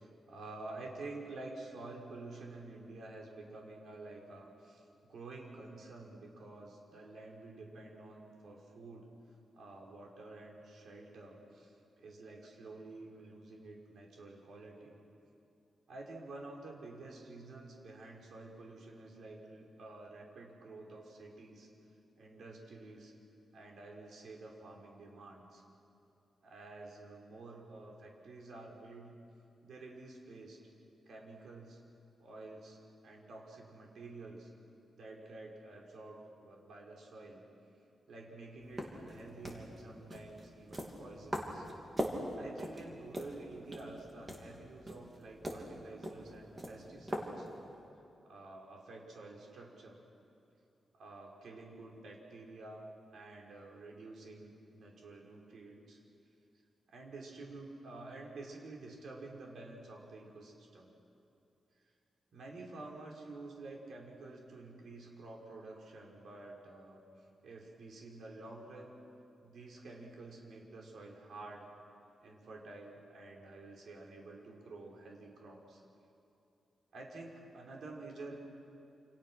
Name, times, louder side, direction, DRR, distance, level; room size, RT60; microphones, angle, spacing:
voice 1, 0.0-9.1 9.5-15.0 15.9-21.7 22.2-23.1 23.5-25.6 26.4-29.1 29.6-30.6 31.1-31.8 32.2-32.8 33.0-34.5 34.9-37.4 38.1-41.6 42.3-47.5 48.2-50.0 50.9-52.9 53.1-56.0 56.9-60.9 62.3-67.0 67.4-68.9 69.4-71.7 72.2-75.8 76.9-78.4, right 2 dB, 65° right, -1 dB, 5.1 m, -50 dB
sound 1, 38.6-47.8, equal, 15° right, 3.2 m, -43 dB
28.5 x 28.0 x 6.3 m, 2.8 s
wide cardioid pair, 150°, 0 cm